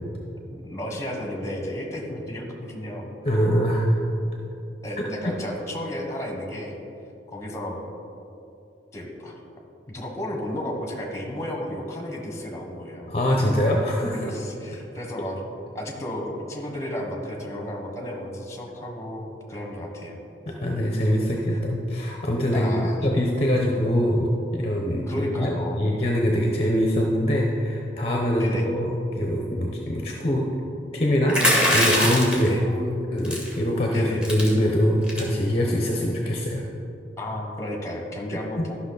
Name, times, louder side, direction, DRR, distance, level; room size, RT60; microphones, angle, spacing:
voice 1, 0.5-3.1 4.8-6.8 7.3-7.8 8.9-9.4 9.9-13.2 14.1-15.4 15.7-20.2 21.2-21.6 22.5-23.0 25.1-25.9 28.4-28.7 32.5-33.1 33.9-34.2 37.2-38.8, left 1 dB, 15° left, 1 dB, 1.3 m, -33 dB
voice 2, 3.2-4.0 5.0-5.3 13.1-14.3 20.5-22.7 23.0-25.5 25.8-30.5 30.9-31.4 31.7-32.6 33.1-36.6 38.3-38.6, equal, 35° left, 0 dB, 0.8 m, -23 dB
sound 1, 31.3-32.5 33.2-33.5 33.9-34.0 34.2-34.5 35.0-35.3, equal, 5° right, 1.8 m, -21 dB
13.0 x 5.8 x 4.0 m, 2.8 s
head